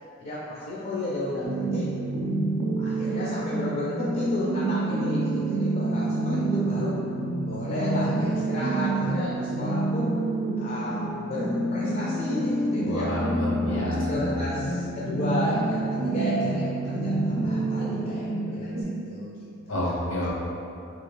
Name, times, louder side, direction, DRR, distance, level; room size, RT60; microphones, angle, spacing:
voice 1, 0.2-1.9 2.2-2.5 2.8-6.9 7.4-10.1 10.6-13.2 13.7-19.3 19.8-20.0, left 1 dB, 40° left, -6 dB, 0.4 m, -33 dB
sound 1, 1.4-18.8, right 2 dB, 65° right, 0.5 m, -28 dB
voice 2, 12.8-14.4 19.7-20.3, left 1 dB, 80° left, -6 dB, 0.8 m, -29 dB
2.9 x 2.4 x 3.2 m, 2.7 s
head